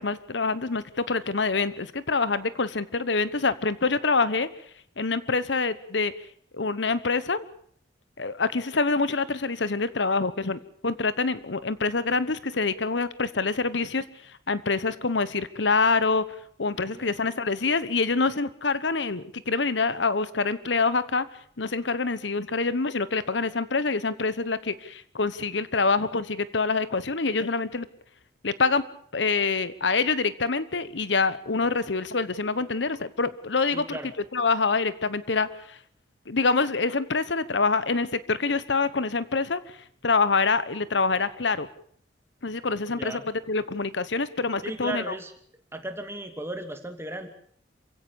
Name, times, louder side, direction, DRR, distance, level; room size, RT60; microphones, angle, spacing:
voice 1, 0.0-4.5 5.0-6.1 6.5-7.4 8.2-16.2 16.6-21.3 21.6-27.9 28.4-28.8 29.1-34.0 34.3-35.8 36.3-39.8 40.0-41.7 42.4-43.2 43.5-45.1, left 4 dB, 75° left, 15 dB, 1.1 m, -26 dB
voice 2, 33.7-34.1 43.0-43.2 44.6-45.3 45.7-47.3, right 1 dB, 15° right, 5 dB, 2.7 m, -35 dB
27.5 x 16.5 x 7.1 m, 0.62 s
head